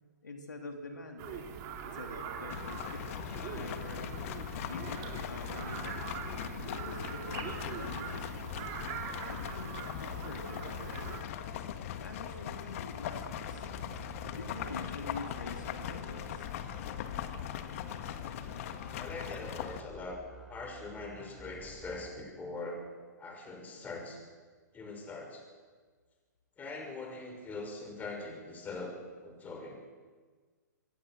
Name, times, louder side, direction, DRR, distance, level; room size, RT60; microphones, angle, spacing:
voice 1, 0.2-4.2 4.6-8.7 9.2-11.2 12.0-13.7 14.3-16.5, left 2 dB, 85° left, 3 dB, 3.2 m, -46 dB
sound 1, 1.2-11.2, right 7 dB, 35° right, 3.9 m, -42 dB
sound 2, 2.5-19.8, left 10 dB, 50° left, 1.8 m, -40 dB
sound 3, 13.2-22.1, right 2 dB, 5° right, 3.7 m, -52 dB
voice 2, 19.0-20.2 20.5-22.8 23.2-24.2 24.7-25.4 26.6-29.0 29.2-29.8, left 3 dB, 15° left, 3 dB, 6.2 m, -42 dB
25.5 x 22.5 x 6.4 m, 1.5 s
figure-of-eight pair, 120°, 10 cm